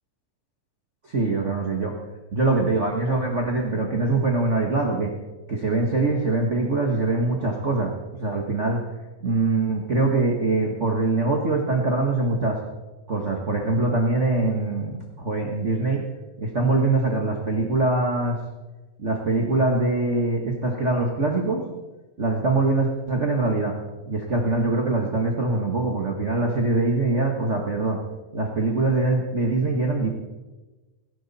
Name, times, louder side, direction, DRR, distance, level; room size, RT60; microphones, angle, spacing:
voice 1, 1.0-1.9 2.3-5.1 5.5-7.9 8.2-8.9 9.2-12.6 13.1-16.1 16.4-18.4 19.0-21.6 22.2-23.8 24.1-28.0 28.3-30.1, right 3 dB, 90° right, 1 dB, 0.6 m, -23 dB
18.5 x 16.0 x 4.2 m, 1.2 s
omnidirectional pair, 4.0 m